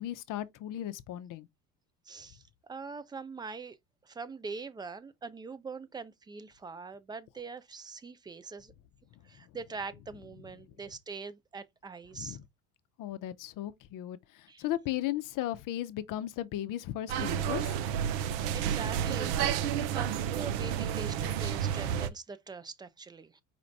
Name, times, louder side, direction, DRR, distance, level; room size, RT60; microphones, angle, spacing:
voice 1, 0.0-1.5 12.1-12.4 13.0-17.8, left 13 dB, 45° left, 0.7 m, -36 dB
voice 2, 2.1-2.4 2.7-3.8 4.0-8.7 9.2-12.4 14.5-14.6 18.5-23.4, right 4 dB, 10° right, 0.3 m, -43 dB
sound 1, 17.1-22.1, right 9 dB, 65° right, 0.7 m, -31 dB
5.1 x 2.5 x 3.3 m
hypercardioid pair, 80°, 44 cm